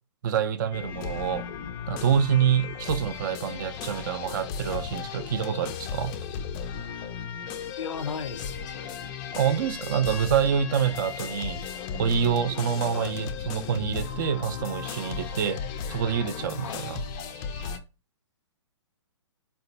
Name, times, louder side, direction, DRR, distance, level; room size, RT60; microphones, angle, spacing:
voice 1, 0.2-1.5 1.9-6.1 9.4-11.6 11.9-15.6 15.9-17.0, right 8 dB, 40° right, 0.4 m, -26 dB
sound 1, 0.7-17.8, left 7 dB, 25° left, 0.4 m, -35 dB
voice 2, 7.8-9.0 12.9-13.2 16.6-16.9, left 6 dB, 85° left, 0.5 m, -36 dB
4.0 x 2.3 x 3.9 m
hypercardioid pair, 135°, 15 cm